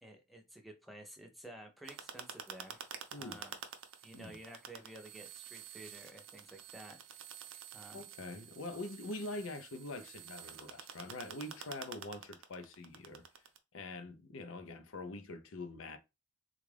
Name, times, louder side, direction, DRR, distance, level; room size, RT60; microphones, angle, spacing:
voice 1, 0.0-2.9 3.2-3.6 4.0-7.3 7.7-8.1, right 1 dB, ahead, 0.5 m, -52 dB
sound 1, 1.8-13.6, right 8 dB, 65° right, 0.5 m, -49 dB
voice 2, 3.1-3.4 4.1-4.4 7.9-13.2 13.7-16.0, left 2 dB, 70° left, 0.6 m, -44 dB
3.5 x 2.4 x 3.2 m
head